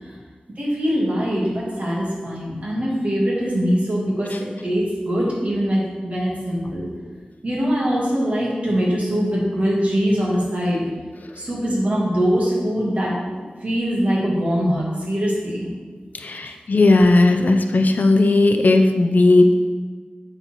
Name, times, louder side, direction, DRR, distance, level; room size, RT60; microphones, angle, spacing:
voice 1, 0.6-6.9 7.4-10.8 11.4-13.2 13.6-15.7, equal, 50° right, -5 dB, 2.4 m, -22 dB
voice 2, 16.1-19.5, left 2 dB, 65° left, 6 dB, 0.6 m, -16 dB
9.1 x 4.3 x 4.6 m, 1.4 s
wide cardioid pair, 90°, 3 cm